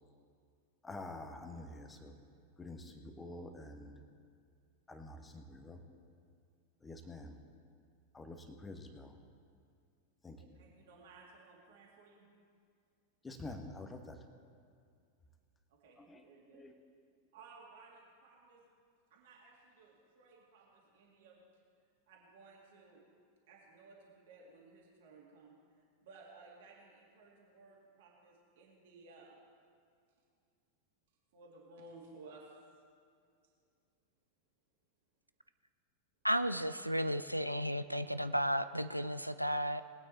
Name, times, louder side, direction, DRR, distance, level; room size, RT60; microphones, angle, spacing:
voice 1, 0.8-2.2 2.6-4.0 4.9-5.8 6.8-7.4 8.1-9.2 10.2-10.6 13.2-14.2 16.0-16.3 16.5-16.8, left 2 dB, 15° left, 6 dB, 1.2 m, -48 dB
voice 2, 10.4-12.3 15.7-16.6 17.3-18.6 19.1-21.4 22.1-23.0 23.5-25.5 26.0-29.4 31.3-32.5, right 3 dB, 55° right, -3 dB, 2.4 m, -58 dB
voice 3, 36.2-39.8, equal, 90° right, 11 dB, 0.3 m, -33 dB
20.5 x 9.0 x 4.2 m, 2.2 s
figure-of-eight pair, 90°, 0 cm